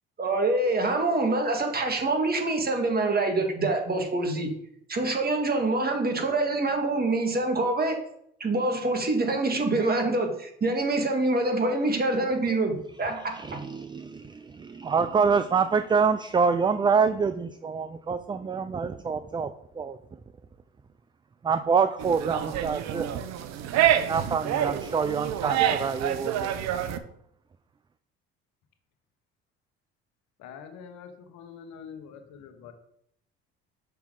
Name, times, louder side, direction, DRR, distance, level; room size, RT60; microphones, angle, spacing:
voice 1, 0.2-4.5 4.9-8.0 8.4-13.4, right 2 dB, 30° right, 3 dB, 1.7 m, -25 dB
voice 2, 13.3-20.0 21.4-23.1 24.1-26.6, right 5 dB, 15° right, 11 dB, 0.4 m, -26 dB
sound 1, 22.0-27.0, right 10 dB, 60° right, 0.7 m, -27 dB
voice 3, 30.4-32.7, left 7 dB, 65° left, 7 dB, 1.2 m, -45 dB
5.9 x 5.7 x 3.8 m, 0.71 s
hypercardioid pair, 65°, 30 cm